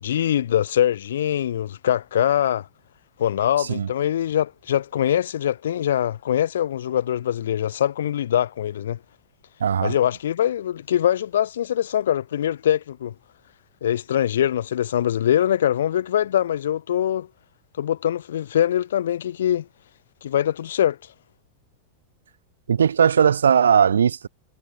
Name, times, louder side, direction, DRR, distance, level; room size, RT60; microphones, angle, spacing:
voice 1, 0.0-2.7 3.2-9.0 9.8-13.1 13.8-17.3 17.8-19.7 20.2-21.0, left 10 dB, 60° left, 3.3 m, -23 dB
voice 2, 3.6-3.9 9.6-10.0 22.7-24.3, right 7 dB, 70° right, 3.0 m, -18 dB
figure-of-eight pair, 90°, 0 cm